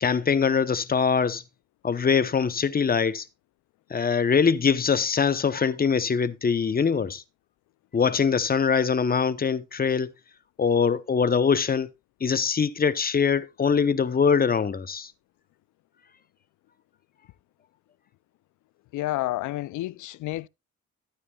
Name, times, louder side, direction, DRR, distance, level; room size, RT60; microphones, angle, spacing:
voice 1, 0.0-1.4 1.8-3.2 3.9-7.2 7.9-10.1 10.6-11.9 12.2-15.1, left 6 dB, 30° left, 0.8 m, -23 dB
voice 2, 18.9-20.5, left 16 dB, 75° left, 0.5 m, -30 dB
14.0 x 9.3 x 2.3 m
cardioid pair, 90°, 30 cm